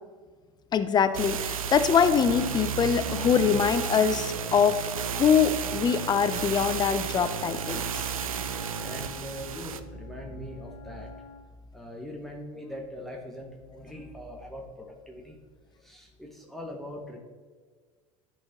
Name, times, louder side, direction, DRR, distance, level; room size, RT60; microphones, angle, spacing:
voice 1, 0.7-4.8 5.1-8.0, left 7 dB, 25° left, 11 dB, 0.6 m, -23 dB
sound 1, 1.1-9.8, right 8 dB, 85° right, 0.4 m, -33 dB
Wind instrument woodwind instrument, 1.9-11.5, left 4 dB, 60° left, 1.6 m, -46 dB
voice 2, 8.6-11.2 11.7-15.4 15.8-17.2, left 1 dB, ahead, 0 dB, 1.1 m, -41 dB
11.5 x 4.2 x 3.6 m, 1.5 s
hypercardioid pair, 80°, 18 cm